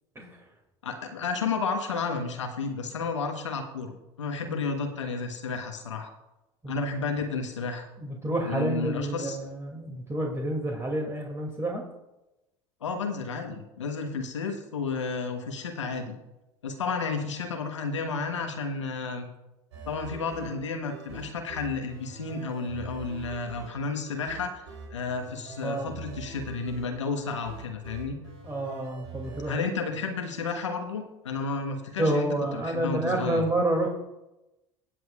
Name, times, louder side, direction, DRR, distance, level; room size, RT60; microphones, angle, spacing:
voice 1, 0.8-6.1 6.7-7.9 8.5-9.4 12.8-16.2 16.6-19.3 19.9-28.2 29.4-32.3 32.5-33.5, left 4 dB, 90° left, 5 dB, 1.2 m, -32 dB
voice 2, 8.0-11.8 25.6-25.9 28.4-29.6 32.0-33.9, right 1 dB, 20° right, 0 dB, 2.5 m, -29 dB
sound 1, 19.7-29.5, right 4 dB, 85° right, 3.4 m, -44 dB
18.0 x 7.8 x 2.4 m, 0.95 s
hypercardioid pair, 75°, 15 cm